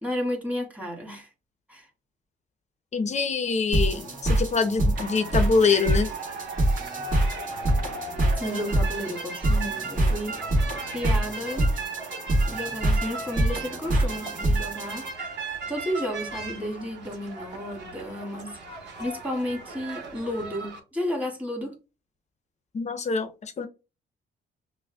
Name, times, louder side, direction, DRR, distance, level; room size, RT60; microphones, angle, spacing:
voice 1, 0.0-1.3 1.7-1.9 8.4-10.4 10.9-11.7 12.5-15.1 15.7-21.8, equal, 5° right, 1.8 m, -32 dB
voice 2, 2.9-6.1 22.7-23.7, left 4 dB, 35° left, 0.7 m, -25 dB
sound 1, 3.7-15.1, right 1 dB, 40° right, 1.9 m, -25 dB
sound 2, 5.0-20.8, right 3 dB, 60° right, 1.3 m, -37 dB
6.0 x 2.2 x 2.3 m
cardioid pair, 90°, 20 cm